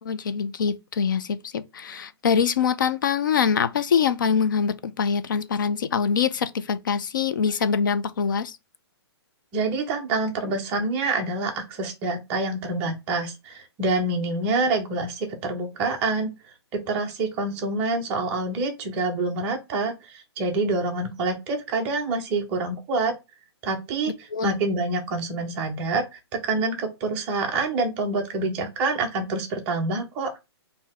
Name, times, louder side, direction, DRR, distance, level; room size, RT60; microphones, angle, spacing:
voice 1, 0.0-8.6 24.3-24.6, left 6 dB, 45° left, 0.5 m, -24 dB
voice 2, 9.5-16.3 16.7-23.1 23.6-24.1 24.4-26.1 26.3-30.3, right 3 dB, 10° right, 0.5 m, -26 dB
3.9 x 2.7 x 4.2 m
hypercardioid pair, 175°, 14 cm